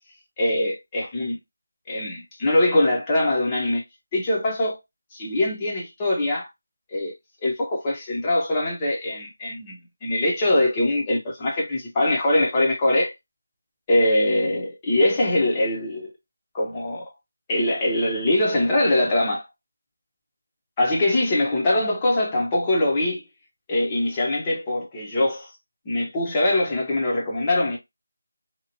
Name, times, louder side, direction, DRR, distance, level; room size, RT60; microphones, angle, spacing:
voice 1, 0.4-1.4 1.9-3.8 4.1-4.8 5.1-6.5 6.9-7.1 7.4-13.1 13.9-16.1 16.5-17.1 17.5-19.5 20.8-23.2 23.7-25.5 25.8-27.8, left 1 dB, 15° left, 0.7 m, -22 dB
2.8 x 2.4 x 2.7 m
figure-of-eight pair, 170°, 0 cm